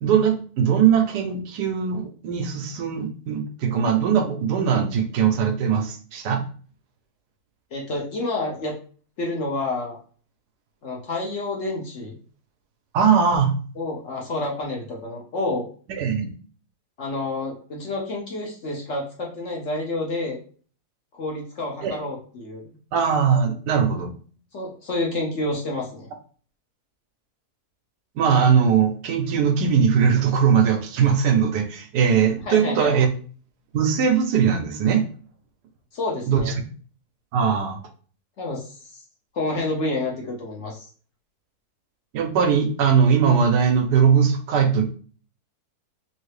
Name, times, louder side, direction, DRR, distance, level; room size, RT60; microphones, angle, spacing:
voice 1, 0.0-6.4 12.9-13.6 16.0-16.3 21.8-21.9 22.9-24.1 28.2-33.1 33.7-35.0 36.3-36.5 37.3-37.8 42.1-44.8, right 7 dB, 80° right, 6 dB, 1.2 m, -20 dB
voice 2, 7.7-8.7 9.2-10.0 10.8-12.2 13.8-15.7 17.0-20.4 21.2-22.7 24.5-26.1 32.4-33.0 35.9-36.5 38.4-39.0 39.3-40.9, left 2 dB, 60° left, -1 dB, 0.9 m, -29 dB
3.1 x 2.7 x 3.2 m, 0.42 s
omnidirectional pair, 1.7 m